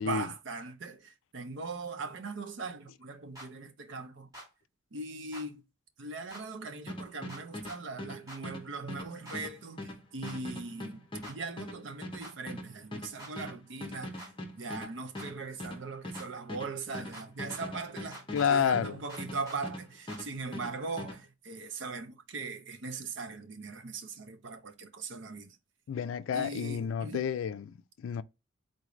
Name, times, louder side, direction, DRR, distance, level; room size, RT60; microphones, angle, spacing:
voice 1, 0.0-4.3 4.9-5.6 6.0-14.2 14.5-18.2 18.5-25.6 26.3-27.2, right 3 dB, 60° right, 0.6 m, -40 dB
sound 1, 3.3-3.5 4.3-4.5 5.3-5.5 6.3-6.4 7.3-7.8 8.3-8.4 9.2-9.4 10.2-10.4 11.2-11.4 12.2-12.3 13.2-13.3 14.2-14.3 15.1-15.3 16.1-16.3 17.1-17.6 18.1-18.6 19.1-19.6 20.1-20.2, right 1 dB, 20° right, 1.7 m, -46 dB
sound 2, 6.9-19.8 20.1-21.2, left 1 dB, 25° left, 0.7 m, -41 dB
voice 2, 18.3-19.0 25.9-28.2, left 7 dB, 75° left, 0.3 m, -30 dB
3.9 x 3.0 x 2.5 m
head